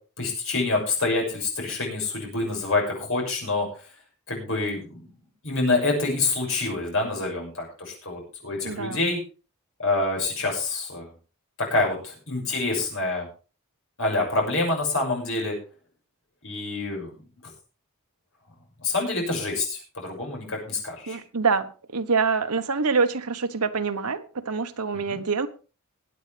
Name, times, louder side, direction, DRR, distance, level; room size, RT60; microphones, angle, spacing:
voice 1, 0.2-3.7 4.3-5.1 5.4-9.2 9.8-11.1 11.6-13.3 14.0-15.6 16.4-17.2 18.8-21.2 24.9-25.2, left 3 dB, 60° left, 6.4 m, -27 dB
voice 2, 8.6-9.0 21.1-21.7 21.9-25.5, right 4 dB, 90° right, 1.1 m, -25 dB
20.5 x 8.7 x 3.4 m
head